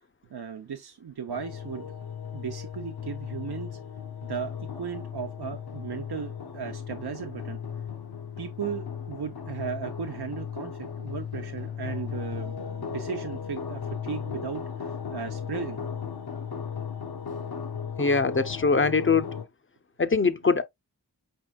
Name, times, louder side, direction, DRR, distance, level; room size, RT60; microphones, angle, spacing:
voice 1, 0.3-1.9 2.3-3.8 4.2-7.6 8.4-15.8, right 7 dB, 80° right, 0.6 m, -36 dB
sound 1, 1.3-19.4, left 7 dB, 75° left, 0.6 m, -36 dB
voice 2, 18.0-19.3 20.0-20.6, left 4 dB, 35° left, 0.4 m, -22 dB
5.2 x 4.5 x 2.2 m
wide cardioid pair, 40°, 38 cm